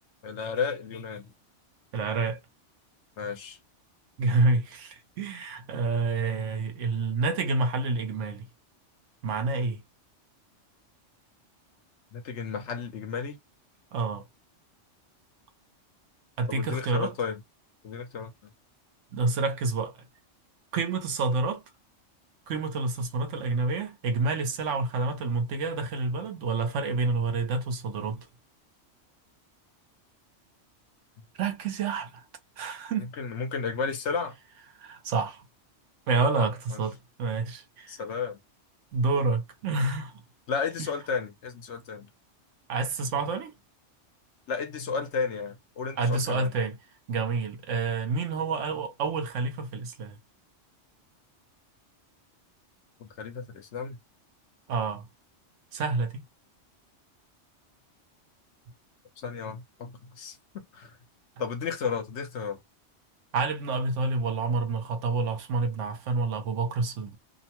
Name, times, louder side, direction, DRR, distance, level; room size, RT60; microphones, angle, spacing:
voice 1, 0.2-1.3 3.2-3.6 12.1-13.4 16.5-17.4 17.8-18.3 33.2-34.4 36.4-36.8 37.9-38.4 40.5-42.1 44.5-46.5 53.0-54.0 59.2-60.9 61.4-62.6, left 5 dB, 70° left, 1.0 m, -33 dB
voice 2, 1.9-2.4 4.2-8.4 9.2-9.8 13.9-14.2 16.4-17.1 19.1-20.0 20.7-21.6 22.5-28.3 31.4-32.2 32.6-33.1 34.8-35.4 36.1-37.9 38.9-40.1 42.7-43.5 46.0-46.8 47.1-50.1 54.7-55.0 55.7-56.2 63.3-67.2, right 3 dB, 80° right, 1.1 m, -28 dB
2.8 x 2.1 x 2.9 m
omnidirectional pair, 1.2 m